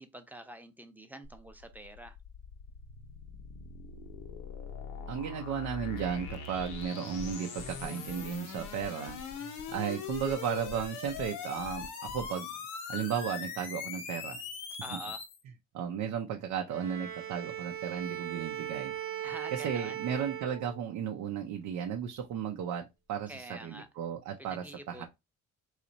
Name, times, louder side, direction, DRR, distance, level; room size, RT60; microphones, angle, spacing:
voice 1, 0.0-2.2 14.8-15.2 19.2-20.0 23.3-23.9 24.4-25.1, right 1 dB, 5° right, 0.6 m, -46 dB
sound 1, 1.2-15.4, left 6 dB, 90° left, 0.9 m, -42 dB
voice 2, 5.1-12.5 12.9-14.4 15.7-18.9 19.5-25.1, right 8 dB, 80° right, 0.6 m, -35 dB
sound 2, 6.1-12.3, left 6 dB, 55° left, 0.6 m, -47 dB
Bowed string instrument, 16.7-21.1, right 11 dB, 45° right, 0.9 m, -39 dB
3.0 x 2.4 x 3.9 m
cardioid pair, 90°, 30 cm